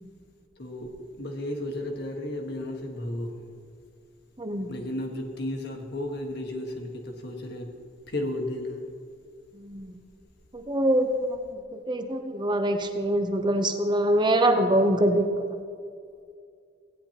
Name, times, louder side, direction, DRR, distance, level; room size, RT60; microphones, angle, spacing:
voice 1, 0.6-3.4 4.7-7.8 8.1-8.9, left 1 dB, 65° left, 2 dB, 1.5 m, -33 dB
voice 2, 4.4-4.7 9.6-9.9 10.5-11.4 11.7-15.3, right 1 dB, 25° right, 6 dB, 0.8 m, -24 dB
16.5 x 9.8 x 2.9 m, 2.3 s
head